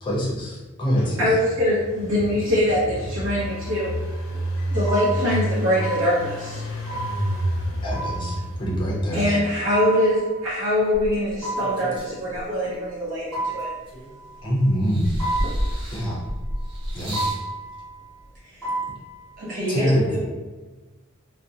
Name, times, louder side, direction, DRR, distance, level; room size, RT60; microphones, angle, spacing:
voice 1, 0.0-1.3 7.8-9.2 14.4-15.1 15.9-16.2 16.9-17.2 19.7-20.3, equal, 25° left, -5 dB, 0.5 m, -24 dB
voice 2, 1.0-3.9 4.7-6.6 9.1-13.7, left 1 dB, 70° right, -10 dB, 0.8 m, -23 dB
Engine, 1.4-9.4, equal, 85° left, 0.4 m, -30 dB
sound 1, 3.3-4.3 4.8-5.4 5.8-6.4 6.9-8.8 9.7-10.9 11.4-12.3 13.3-14.6 15.2-16.7 17.1-18.2 18.6-19.4, right 2 dB, 5° right, 0.9 m, -32 dB
sound 2, 10.9-12.8 13.3-14.4 14.8-17.5 18.4-18.5, equal, 25° right, 0.5 m, -31 dB
voice 3, 18.4-18.7 19.4-20.3, right 1 dB, 40° right, -7 dB, 0.9 m, -28 dB
2.4 x 2.1 x 2.7 m, 1.2 s
head